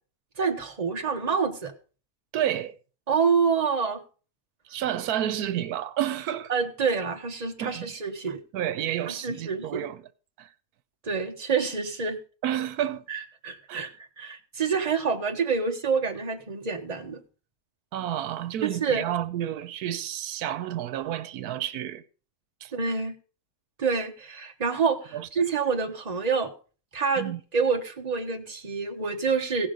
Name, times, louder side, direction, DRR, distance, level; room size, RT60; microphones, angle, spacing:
voice 1, 0.4-1.7 3.1-4.0 6.5-8.4 9.1-9.9 11.0-12.2 13.1-13.9 14.2-17.2 18.6-19.0 22.7-23.1 23.8-26.5 26.9-29.7, right 5 dB, 30° right, 1.3 m, -27 dB
voice 2, 2.3-2.7 4.7-6.5 7.6-7.9 8.5-10.0 10.4-10.5 12.4-13.0 13.7-13.9 17.9-22.0 22.6-22.7 25.1-25.3 27.2-27.4, right 11 dB, 90° right, 1.2 m, -30 dB
16.5 x 6.1 x 5.2 m
omnidirectional pair, 1.6 m